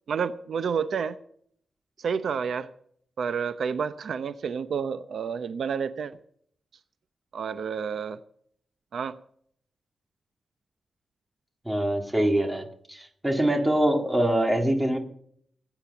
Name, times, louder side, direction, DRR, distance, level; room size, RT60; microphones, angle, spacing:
voice 1, 0.1-1.2 2.0-2.7 3.2-6.2 7.3-8.2 8.9-9.2, right 6 dB, 75° right, 13 dB, 0.6 m, -29 dB
voice 2, 11.7-15.0, right 1 dB, 10° right, 4 dB, 2.0 m, -24 dB
18.0 x 8.8 x 6.8 m, 0.64 s
wide cardioid pair, 160°, 0 cm